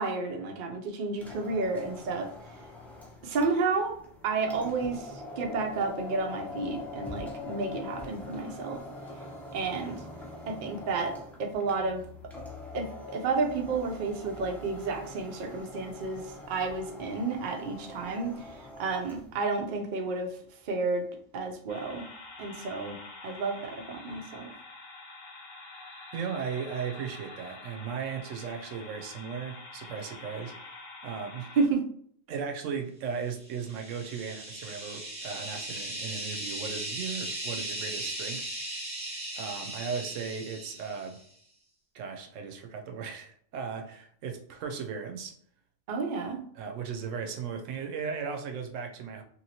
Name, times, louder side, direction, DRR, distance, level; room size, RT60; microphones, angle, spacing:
voice 1, 0.0-2.3 3.2-4.0 4.2-8.8 9.5-10.0 10.5-12.0 12.7-18.5 18.8-20.4 20.6-21.1 21.3-22.0 22.4-23.0 23.2-24.5 31.6-31.8 45.9-46.4, right 4 dB, 55° right, 0.6 m, -31 dB
sound 1, 1.1-19.4, left 2 dB, ahead, 0.4 m, -44 dB
sound 2, 21.7-31.7, left 3 dB, 80° left, 1.1 m, -46 dB
voice 2, 26.1-30.5 31.0-31.5 32.3-38.5 39.3-41.2 41.9-45.3 46.5-49.2, right 6 dB, 85° right, 0.9 m, -36 dB
sound 3, 33.4-41.2, right 1 dB, 25° right, 1.1 m, -38 dB
2.9 x 2.8 x 2.7 m
omnidirectional pair, 1.3 m